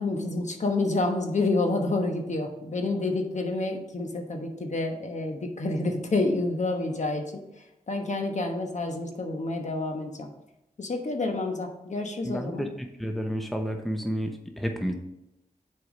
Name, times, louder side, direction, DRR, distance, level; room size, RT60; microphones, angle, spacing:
voice 1, 0.0-7.4 7.9-10.3 10.8-12.7, left 2 dB, 55° left, 4 dB, 1.2 m, -28 dB
voice 2, 12.2-12.7 13.0-14.9, equal, ahead, 4 dB, 0.9 m, -30 dB
7.1 x 4.6 x 5.1 m, 0.89 s
cardioid pair, 60°, 15 cm